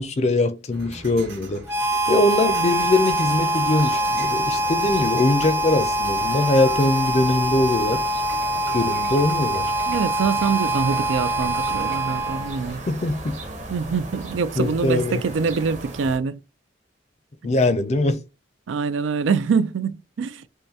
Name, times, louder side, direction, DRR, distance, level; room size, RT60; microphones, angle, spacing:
voice 1, 0.0-1.6 2.1-8.0 8.7-9.7 12.9-13.4 14.6-15.2 17.4-18.2, left 2 dB, 35° left, 0.5 m, -22 dB
sound 1, 0.7-12.0, right 2 dB, 70° right, 1.6 m, -41 dB
Harmonica, 1.7-12.7, right 1 dB, 10° right, 0.6 m, -24 dB
sound 2, 2.4-16.2, right 2 dB, 40° right, 0.9 m, -38 dB
voice 2, 9.9-12.8 13.7-16.4 18.7-20.4, right 5 dB, 90° right, 0.4 m, -24 dB
5.5 x 2.2 x 2.7 m
head